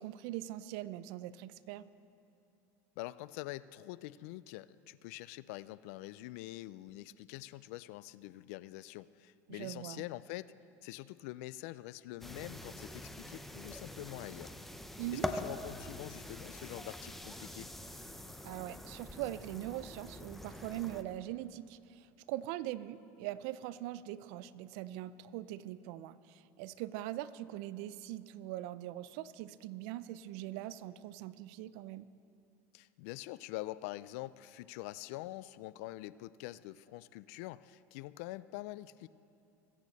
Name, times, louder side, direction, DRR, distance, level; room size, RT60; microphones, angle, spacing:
voice 1, 0.0-1.9 9.5-10.0 15.0-15.3 18.4-32.1, right 14 dB, 65° right, 16 dB, 0.4 m, -42 dB
voice 2, 3.0-10.5 10.8-14.5 15.1-17.7 32.7-39.1, left 17 dB, 70° left, 18 dB, 0.3 m, -45 dB
sound 1, 12.2-21.0, left 1 dB, 5° left, 0.7 m, -44 dB
21.5 x 8.3 x 4.1 m, 2.7 s
supercardioid pair, 125°, 8 cm